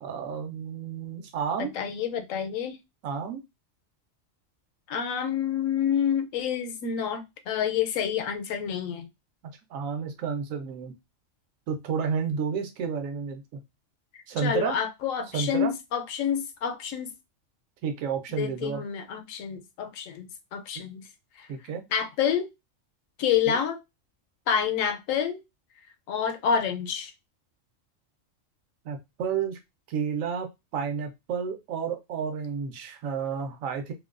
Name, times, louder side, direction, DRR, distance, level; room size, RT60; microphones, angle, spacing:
voice 1, 0.0-1.7 3.0-3.4 9.7-10.9 11.7-13.6 14.3-14.8 15.3-15.7 17.8-18.8 21.5-21.8 23.5-23.6 28.8-29.6 29.9-30.5 30.7-33.9, right 6 dB, 80° right, 1.0 m, -31 dB
voice 2, 1.6-2.8 4.9-9.1 14.1-17.1 18.3-21.1 21.4-21.5 21.9-22.5 23.2-23.8 24.5-25.4 26.1-27.1, left 8 dB, 80° left, 1.0 m, -28 dB
2.7 x 2.2 x 2.3 m
omnidirectional pair, 1.3 m